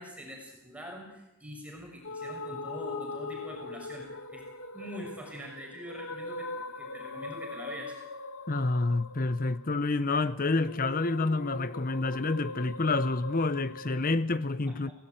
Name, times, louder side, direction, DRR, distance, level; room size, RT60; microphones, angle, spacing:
voice 1, 0.0-4.4 4.7-8.0 14.7-14.9, equal, 5° right, 6.4 m, -44 dB
sound 1, 2.0-14.1, left 3 dB, 85° left, 2.3 m, -41 dB
voice 2, 8.5-14.9, left 3 dB, 40° left, 0.9 m, -28 dB
28.0 x 18.0 x 9.1 m
head